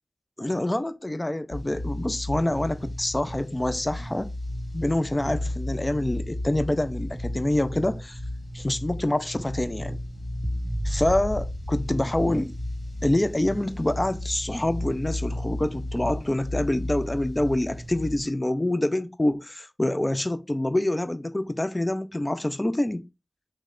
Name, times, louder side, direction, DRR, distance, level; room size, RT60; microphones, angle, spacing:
voice 1, 0.4-4.3 4.7-8.2 8.5-10.0 10.8-12.5 13.0-23.1, left 1 dB, 25° left, 0.4 m, -26 dB
sound 1, 1.5-18.2, left 1 dB, 65° left, 2.3 m, -34 dB
sound 2, 10.4-13.5, right 1 dB, 35° right, 0.6 m, -34 dB
3.3 x 3.2 x 3.7 m
cardioid pair, 40°, 0 cm